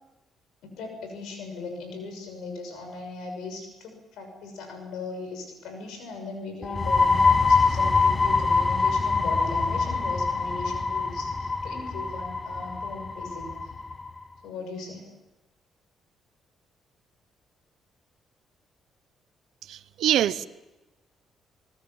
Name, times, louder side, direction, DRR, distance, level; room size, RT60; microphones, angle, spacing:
voice 1, 0.6-13.7 14.4-15.1, left 3 dB, 85° left, 6 dB, 6.1 m, -38 dB
sound 1, 6.6-14.1, left 4 dB, 20° left, 0.7 m, -24 dB
voice 2, 19.6-20.5, right 11 dB, 80° right, 15 dB, 0.9 m, -25 dB
26.5 x 19.5 x 7.3 m, 1.0 s
cardioid pair, 90°, 0 cm